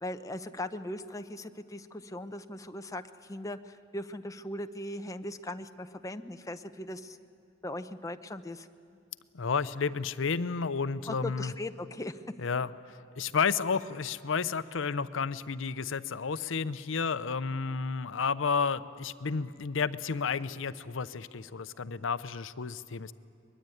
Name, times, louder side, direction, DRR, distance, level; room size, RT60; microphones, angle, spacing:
voice 1, 0.0-7.2 7.6-8.7 11.1-12.2, left 1 dB, 15° left, 8 dB, 0.7 m, -39 dB
voice 2, 9.3-11.5 12.4-12.7 13.2-23.1, left 5 dB, 70° left, 14 dB, 0.7 m, -31 dB
23.0 x 21.0 x 9.2 m, 2.4 s
head